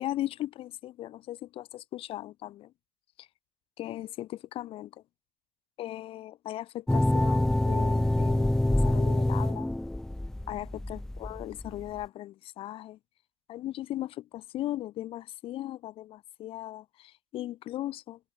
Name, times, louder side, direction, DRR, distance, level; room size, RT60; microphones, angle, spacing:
voice 1, 0.0-2.7 3.2-3.3 3.8-4.9 5.8-9.7 10.5-13.0 13.5-18.2, left 14 dB, 45° left, 5.5 m, -38 dB
sound 1, 6.9-12.0, left 1 dB, 5° left, 0.9 m, -26 dB
cardioid pair, 175°, 12 cm